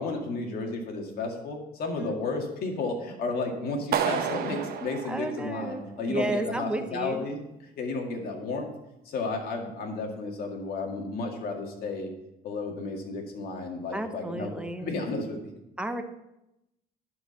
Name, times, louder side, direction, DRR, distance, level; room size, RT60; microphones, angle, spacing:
voice 1, 0.0-7.4 7.8-8.7 9.1-12.1 12.4-14.5 14.8-15.4, left 3 dB, 65° left, 2 dB, 2.1 m, -32 dB
Clapping, 3.9-6.0, right 8 dB, 65° right, 0.9 m, -31 dB
voice 2, 5.1-7.2 13.9-14.9 15.8-16.0, right 1 dB, 5° right, 7 dB, 0.9 m, -32 dB
11.0 x 4.8 x 5.8 m, 0.89 s
cardioid pair, 110°, 17 cm